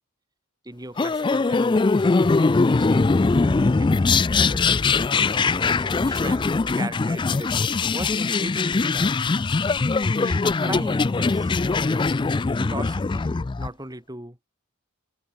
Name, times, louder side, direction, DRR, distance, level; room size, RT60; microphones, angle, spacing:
voice 1, 0.6-4.8 5.6-9.2 10.2-12.1 12.6-14.4, right 1 dB, 15° right, 3.5 m, -38 dB
sound 1, 1.0-13.7, left 4 dB, 20° left, 0.3 m, -21 dB
head